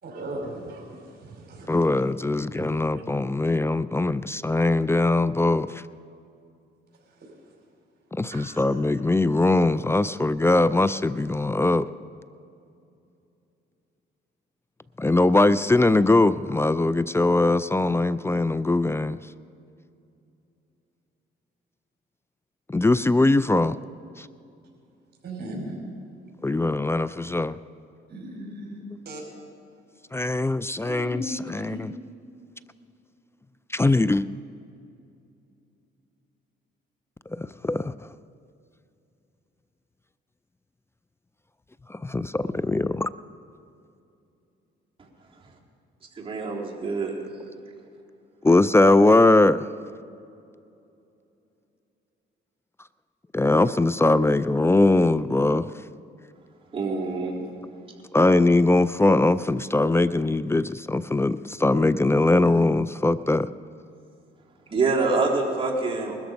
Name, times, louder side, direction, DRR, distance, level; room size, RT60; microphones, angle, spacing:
voice 1, 0.0-1.9 2.6-2.7 7.1-7.4 8.3-8.7 25.2-25.8 28.1-28.8 29.0-29.2 30.8-31.8, right 1 dB, 55° right, 0 dB, 5.0 m, -37 dB
voice 2, 1.7-5.8 8.1-11.9 15.0-19.2 22.7-23.8 24.2-24.3 26.4-27.6 30.1-31.9 33.7-34.2 37.3-38.1 41.9-43.1 48.4-49.7 53.3-55.7 58.1-63.5, left 2 dB, 15° left, 16 dB, 0.4 m, -21 dB
voice 3, 46.2-47.2 56.7-57.4 64.7-66.2, right 3 dB, 30° right, -4 dB, 3.6 m, -25 dB
20.5 x 13.5 x 5.2 m, 2.6 s
cardioid pair, 90°, 20 cm